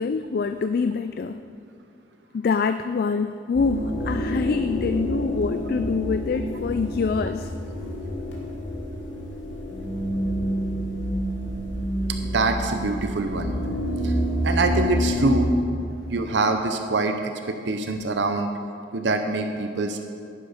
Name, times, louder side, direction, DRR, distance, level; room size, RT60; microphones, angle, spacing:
voice 1, 0.0-1.4 2.3-7.5, left 4 dB, 50° left, 9 dB, 0.3 m, -25 dB
sound 1, 3.5-15.5, equal, 85° left, 2.8 m, -28 dB
voice 2, 12.2-13.5 14.0-14.2 14.4-15.5 16.1-18.5 18.9-20.0, right 3 dB, 70° right, 6 dB, 0.7 m, -24 dB
10.5 x 10.5 x 5.1 m, 2.4 s
head